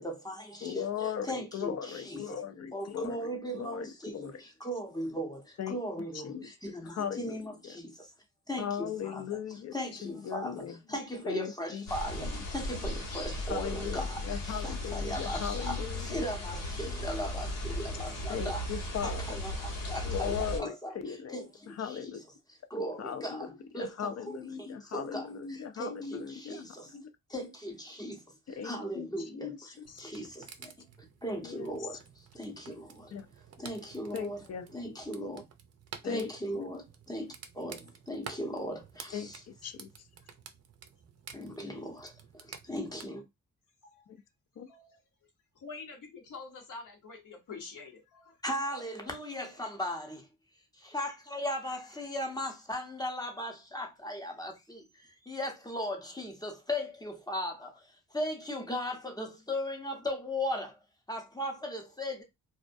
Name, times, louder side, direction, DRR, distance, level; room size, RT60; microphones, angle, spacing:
voice 1, 0.0-2.3 2.7-8.1 8.5-9.4 9.7-26.9 27.3-28.2 28.5-30.7 31.2-32.0 32.3-33.1 33.6-35.4 36.0-39.5 41.3-43.2 48.4-50.3 50.7-60.8 61.1-62.2, equal, 10° left, 0.6 m, -38 dB
voice 2, 0.6-3.3 3.5-4.4 5.6-5.8 6.2-7.5 8.6-9.7 10.0-10.8 11.2-11.9 12.2-12.3 13.5-16.2 18.3-19.4 20.0-22.2 23.0-23.5 23.7-27.1 28.6-29.1 29.3-30.1 31.4-31.8 33.1-33.3 34.1-34.7 36.0-36.7 39.1-39.9 44.1-44.2 44.6-44.7, left 8 dB, 50° left, 0.5 m, -38 dB
sound 1, 11.9-20.6, left 1 dB, 90° left, 1.1 m, -36 dB
sound 2, 29.9-43.1, right 7 dB, 50° right, 0.4 m, -51 dB
voice 3, 44.7-45.0 45.6-48.3 49.0-49.5 52.0-52.1, left 4 dB, 70° left, 0.8 m, -47 dB
2.3 x 2.1 x 2.5 m
cardioid pair, 95°, 33 cm